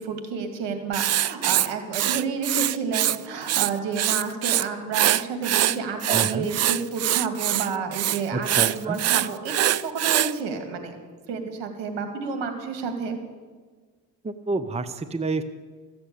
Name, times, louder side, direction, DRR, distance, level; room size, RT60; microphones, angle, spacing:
voice 1, 0.0-11.0 11.3-13.2, right 5 dB, 75° right, 6 dB, 2.4 m, -30 dB
Writing, 0.9-3.2 3.4-4.6 4.9-10.3, right 12 dB, 40° right, 0.4 m, -23 dB
voice 2, 6.1-6.5 8.3-9.0 14.2-15.4, right 3 dB, 15° right, 12 dB, 0.8 m, -28 dB
14.0 x 7.8 x 8.5 m, 1.4 s
supercardioid pair, 70°, 43 cm